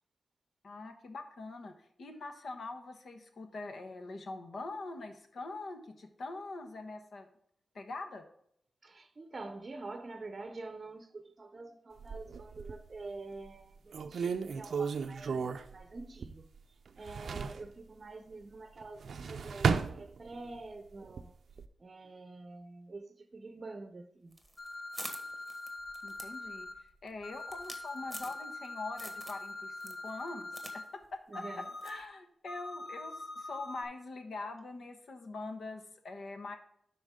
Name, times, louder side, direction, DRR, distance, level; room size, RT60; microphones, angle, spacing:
voice 1, 0.6-1.7 2.0-7.3 7.7-8.2 26.0-26.7 27.0-31.4 31.8-36.6, left 3 dB, 65° left, 1.2 m, -43 dB
voice 2, 8.8-16.5 17.0-21.3 21.8-24.4 31.3-32.1, right 3 dB, 40° right, 0.7 m, -46 dB
sound 1, 12.0-13.0 13.5-13.6 13.9-16.6 16.9-17.7 18.8-20.6 21.0-21.7, right 5 dB, 75° right, 0.5 m, -34 dB
sound 2, 24.3-28.7 29.0-29.5 29.8-30.8 31.0-31.1 31.8-32.0, right 1 dB, ahead, 1.4 m, -46 dB
sound 3, 24.6-26.7 27.2-30.8 31.3-32.0 32.5-33.8, left 2 dB, 40° left, 1.6 m, -43 dB
11.5 x 4.4 x 3.7 m
wide cardioid pair, 95°, 0 cm